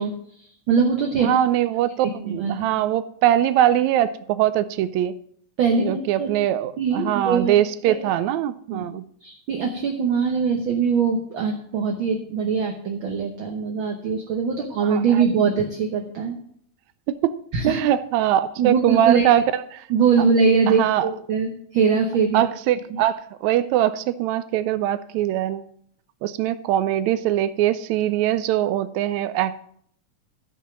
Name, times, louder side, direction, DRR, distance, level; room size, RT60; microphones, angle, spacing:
voice 1, 0.0-1.3 2.2-2.6 5.6-6.3 6.8-7.6 7.8-7.9 8.7-8.8 9.2-16.4 17.5-17.8 18.6-19.3 19.9-22.4 22.9-23.0, right 5 dB, 60° right, 3 dB, 1.4 m, -22 dB
voice 2, 1.2-5.1 5.8-9.0 14.9-15.2 17.1-17.4 17.7-19.9 20.7-21.1 22.3-25.7 26.2-29.7, right 12 dB, 80° right, 14 dB, 1.8 m, -22 dB
13.5 x 5.8 x 6.1 m, 0.66 s
omnidirectional pair, 3.3 m